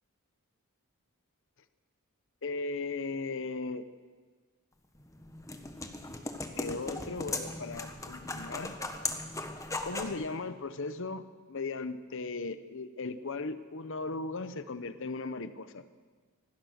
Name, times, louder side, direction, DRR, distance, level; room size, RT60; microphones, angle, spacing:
voice 1, 2.4-3.9 6.6-8.8 9.8-15.9, left 3 dB, 60° left, 12 dB, 0.9 m, -37 dB
sound 1, 4.9-10.2, left 2 dB, 15° left, 1.4 m, -38 dB
25.0 x 18.5 x 6.6 m, 1.4 s
head